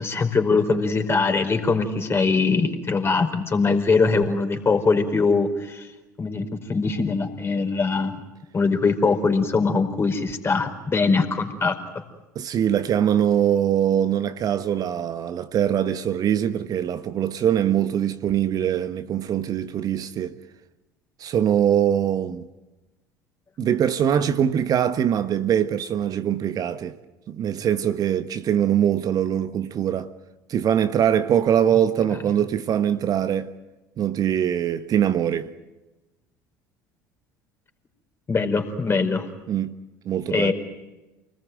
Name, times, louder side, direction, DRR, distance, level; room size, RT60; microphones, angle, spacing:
voice 1, 0.0-5.9 6.2-8.1 8.5-11.7 38.3-39.3 40.3-40.5, left 4 dB, 25° left, 4.7 m, -22 dB
voice 2, 12.3-20.4 21.2-22.4 23.6-27.0 27.3-30.1 30.5-33.5 34.0-35.5 39.5-39.7 40.1-40.5, right 9 dB, 40° right, 1.3 m, -22 dB
29.5 x 20.0 x 9.3 m
figure-of-eight pair, 65°, 10 cm